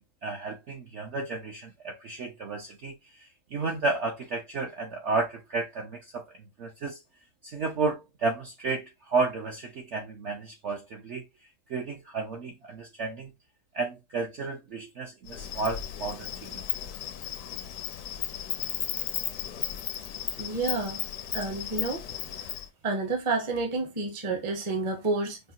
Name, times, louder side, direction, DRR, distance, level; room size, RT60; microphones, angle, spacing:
voice 1, 0.2-7.0 7.4-11.3 11.7-13.3 13.7-16.5, right 3 dB, 60° right, 0.8 m, -32 dB
Insect, 15.3-22.7, left 10 dB, 70° left, 0.8 m, -35 dB
voice 2, 20.4-21.0 21.3-22.0 22.4-22.5 22.8-25.4, right 3 dB, 25° right, 0.7 m, -29 dB
5.5 x 2.1 x 2.7 m
omnidirectional pair, 1.7 m